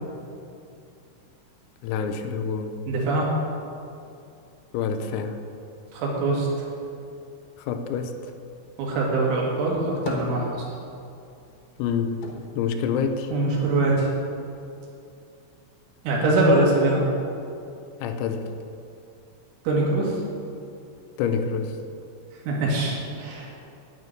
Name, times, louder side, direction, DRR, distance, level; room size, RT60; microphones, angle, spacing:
voice 1, 1.8-2.8 4.7-5.4 7.6-8.3 11.8-12.2 12.6-13.3 18.0-18.5 21.2-21.8, left 6 dB, 90° left, 7 dB, 3.6 m, -27 dB
voice 2, 2.9-3.4 5.9-6.7 8.8-10.5 13.3-14.1 16.0-17.0 19.7-20.2 22.5-23.6, right 2 dB, 70° right, -3 dB, 4.5 m, -23 dB
sound 1, 9.8-11.1 11.4-13.8 14.1-15.0, left 2 dB, 70° left, 2.5 m, -38 dB
10.5 x 6.7 x 9.2 m, 2.6 s
omnidirectional pair, 5.9 m